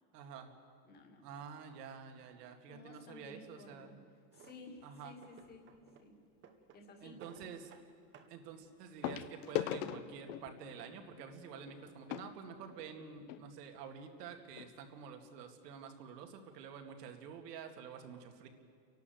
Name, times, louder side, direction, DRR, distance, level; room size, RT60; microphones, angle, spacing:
voice 1, 0.1-0.5 1.2-4.0 4.8-5.1 7.0-7.7 8.3-18.5, right 7 dB, 70° right, 5 dB, 2.3 m, -49 dB
voice 2, 0.8-1.2 2.7-3.9 4.3-5.7 6.0-6.2 6.7-7.2, left 3 dB, 20° left, 2 dB, 2.3 m, -54 dB
Drawer open or close, 4.3-4.6 5.2-6.1 6.4-7.9 8.1-8.4 8.7-9.3, right 7 dB, 20° right, 1.0 m, -58 dB
sound 1, 5.4-5.7 7.4-7.5 9.0-13.4 14.2-14.3 14.5-14.7 15.2-15.3, left 12 dB, 50° left, 0.8 m, -42 dB
29.0 x 12.0 x 7.9 m, 2.2 s
supercardioid pair, 155°, 50 cm